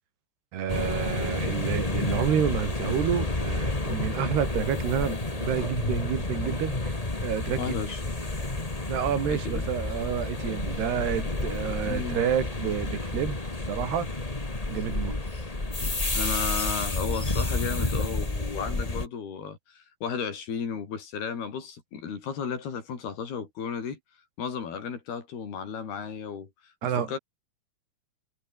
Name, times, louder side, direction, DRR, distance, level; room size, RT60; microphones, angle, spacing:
voice 1, 0.5-7.0 7.2-7.7 8.9-13.4 13.7-14.2 14.7-15.2 26.8-27.1, right 9 dB, 85° right, 4.9 m, -29 dB
sound 1, 0.7-19.1, left 2 dB, 15° left, 1.2 m, -30 dB
voice 2, 7.6-8.0 9.3-9.6 11.8-12.2 16.1-24.0 24.4-27.2, left 6 dB, 75° left, 6.2 m, -34 dB
omnidirectional pair, 4.5 m